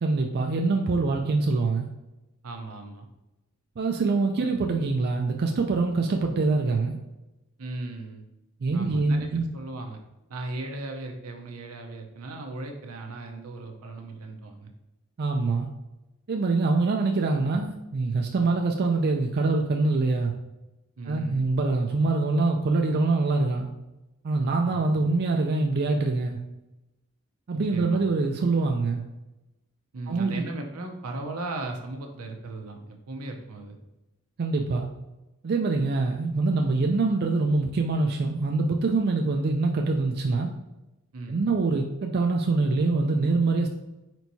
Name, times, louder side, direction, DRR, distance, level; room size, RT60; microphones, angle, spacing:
voice 1, 0.0-1.9 3.8-7.0 8.6-9.5 15.2-15.7 16.3-20.3 21.1-23.7 24.2-26.4 27.5-29.0 30.1-30.4 34.4-34.9 35.4-40.5 41.3-43.7, right 3 dB, 45° right, 2 dB, 0.4 m, -24 dB
voice 2, 2.4-3.1 4.4-4.5 7.6-8.2 8.7-10.0 10.3-14.7 21.0-21.5 24.7-25.0 27.7-28.0 29.9-33.8 41.1-41.5, right 2 dB, 80° right, 4 dB, 0.7 m, -37 dB
4.5 x 4.4 x 2.7 m, 0.97 s
head